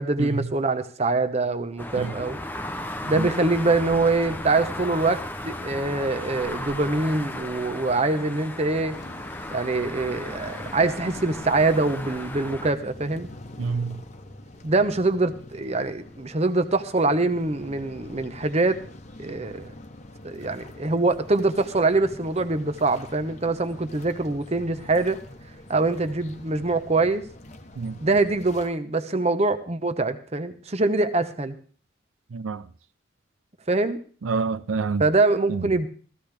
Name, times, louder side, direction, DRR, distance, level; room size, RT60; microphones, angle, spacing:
voice 1, 0.0-2.4 3.0-9.0 9.5-13.3 14.6-18.8 19.2-19.7 20.2-25.2 25.7-27.2 28.0-31.6 33.7-34.0 35.0-35.9, right 3 dB, 30° right, 0.9 m, -24 dB
sound 1, 1.8-12.7, left 1 dB, 10° left, 0.7 m, -35 dB
sound 2, 8.9-28.7, left 1 dB, 35° left, 1.0 m, -44 dB
voice 2, 13.6-14.0 27.8-28.0 32.3-32.6 34.2-35.0 35.5-35.7, right 4 dB, 85° right, 0.5 m, -27 dB
15.0 x 14.5 x 3.4 m
head